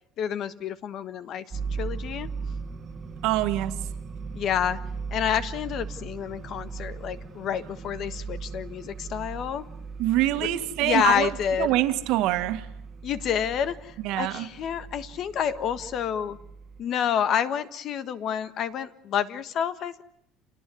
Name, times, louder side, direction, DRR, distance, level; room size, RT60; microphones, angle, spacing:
voice 1, 0.2-2.3 4.3-4.8 5.1-9.6 10.4-10.5 10.8-11.7 13.0-16.4 16.8-20.0, left 9 dB, 40° left, 13 dB, 1.4 m, -28 dB
sound 1, 1.5-16.8, right 5 dB, 25° right, 1.9 m, -38 dB
voice 2, 3.2-3.8 10.0-11.3 11.6-12.7 14.0-14.5, right 15 dB, 60° right, 8 dB, 2.0 m, -25 dB
28.5 x 18.5 x 9.5 m, 0.75 s
cardioid pair, 165°, 0 cm